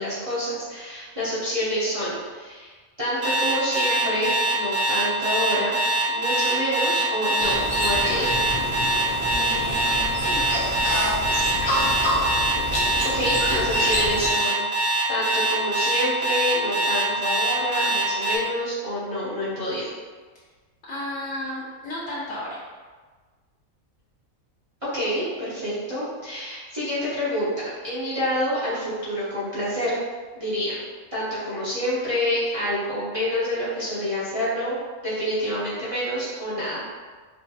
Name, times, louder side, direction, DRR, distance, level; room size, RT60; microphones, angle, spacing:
voice 1, 0.0-2.7 3.0-5.8 6.1-8.4 13.0-14.6 15.1-19.9 24.8-27.5 27.8-29.9 30.3-30.8 31.1-34.8 35.0-36.8, equal, 25° right, -11 dB, 1.0 m, -27 dB
Alarm, 3.2-18.4, right 2 dB, 55° right, 0.9 m, -23 dB
sound 1, 7.4-14.3, left 1 dB, 50° left, 0.9 m, -27 dB
voice 2, 9.3-10.4 20.9-22.6, left 1 dB, 65° left, -9 dB, 1.4 m, -33 dB
4.8 x 2.1 x 2.8 m, 1.4 s
omnidirectional pair, 1.5 m